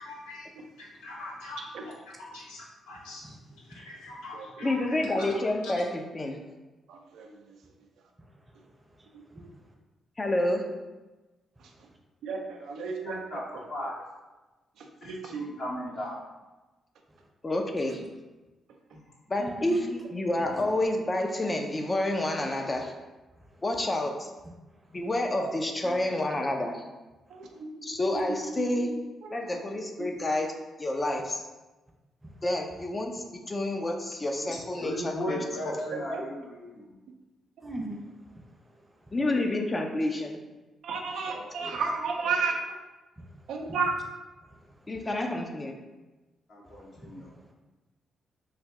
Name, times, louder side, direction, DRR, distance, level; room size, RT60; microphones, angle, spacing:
voice 1, 0.0-1.9 2.2-5.3 5.6-5.7, left 2 dB, 80° left, -4 dB, 0.7 m, -44 dB
voice 2, 4.6-6.4 10.2-10.7 17.4-18.0 19.3-22.9 23.6-24.3 24.9-26.8 27.8-28.9 29.3-30.5 30.8-31.5 32.4-35.8 39.1-40.4 44.9-45.8, left 1 dB, 30° left, 3 dB, 0.6 m, -29 dB
voice 3, 6.9-7.5 12.2-13.4 13.8-13.9 14.8-15.6 25.8-25.9 27.3-28.0 28.6-28.7 29.2-29.4 30.0-30.1 35.3-35.4 35.9-36.2 40.8-42.6 43.5-43.9, right 4 dB, 70° right, 2 dB, 0.5 m, -33 dB
voice 4, 8.2-9.7 11.6-12.0 17.1-17.2 18.0-18.1 19.4-20.0 20.4-20.6 23.3-23.6 24.9-25.0 27.3-27.6 32.2-32.4 37.6-39.1 43.2-43.8 44.4-44.9 46.6-47.5, right 1 dB, 25° right, 1 dB, 0.8 m, -44 dB
voice 5, 12.8-13.4 13.7-13.9 15.0-16.1 34.8-36.9 41.3-41.7 46.5-47.3, equal, 60° left, -6 dB, 1.2 m, -36 dB
3.3 x 2.5 x 3.6 m, 1.1 s
hypercardioid pair, 40°, 0 cm